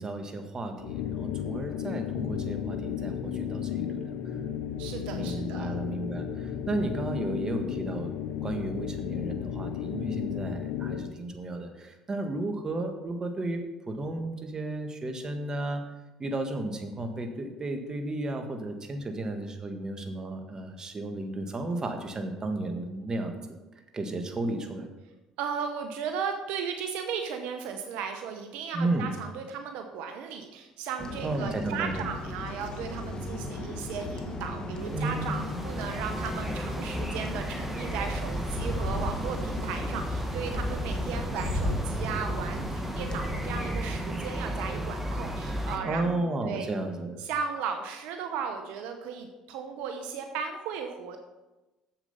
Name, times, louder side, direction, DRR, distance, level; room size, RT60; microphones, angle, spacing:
voice 1, 0.0-4.2 5.1-8.1 8.4-15.8 16.2-23.6 23.9-24.9 28.7-29.1 31.2-32.0 34.9-35.3 45.8-47.2, right 2 dB, 30° right, 5 dB, 1.6 m, -33 dB
sound 1, 0.8-11.2, left 9 dB, 75° left, 0.6 m, -34 dB
voice 2, 4.8-5.8 25.4-46.7 47.2-51.2, right 6 dB, 80° right, 5 dB, 0.8 m, -36 dB
sound 2, 31.0-43.7, left 2 dB, 35° left, 1.4 m, -37 dB
sound 3, 34.8-45.8, equal, 10° right, 1.5 m, -33 dB
7.6 x 7.3 x 5.5 m, 1.1 s
supercardioid pair, 75°, 2 cm